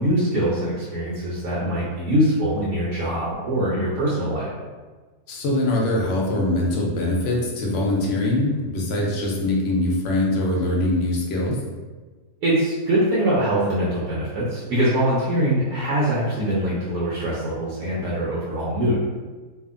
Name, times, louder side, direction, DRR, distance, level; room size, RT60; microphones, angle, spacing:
voice 1, 0.0-4.5 12.4-19.0, right 1 dB, 85° right, -7 dB, 1.2 m, -23 dB
voice 2, 5.3-11.6, left 1 dB, 65° left, -2 dB, 0.8 m, -23 dB
2.7 x 2.4 x 2.4 m, 1.3 s
omnidirectional pair, 1.6 m